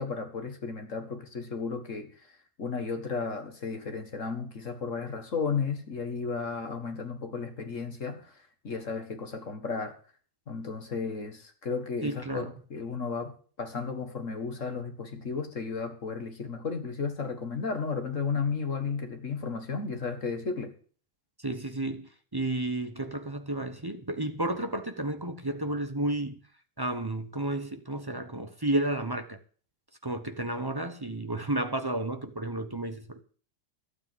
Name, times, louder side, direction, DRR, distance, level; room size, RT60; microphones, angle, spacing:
voice 1, 0.0-2.3 2.6-10.0 10.5-20.7, left 5 dB, 40° left, 1.9 m, -34 dB
voice 2, 12.0-12.5 21.4-26.4 26.8-29.4 30.0-33.2, right 1 dB, 25° right, 0.5 m, -32 dB
12.5 x 8.6 x 7.4 m
omnidirectional pair, 2.3 m